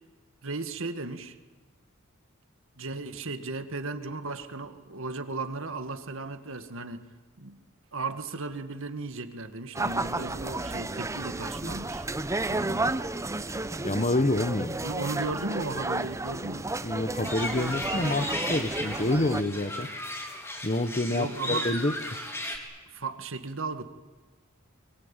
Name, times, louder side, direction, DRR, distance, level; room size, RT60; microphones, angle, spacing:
voice 1, 0.4-1.3 2.8-7.1 7.4-7.6 7.9-12.1 14.8-16.7 21.1-21.7 22.9-23.8, right 3 dB, 65° right, 1.9 m, -35 dB
sound 1, 9.7-19.4, right 2 dB, 15° right, 0.8 m, -32 dB
voice 2, 12.5-12.9 13.8-14.8 16.8-19.9 20.6-21.9, left 2 dB, 35° left, 1.4 m, -28 dB
sound 2, 17.2-22.6, left 1 dB, 15° left, 3.7 m, -35 dB
23.5 x 23.0 x 9.0 m
head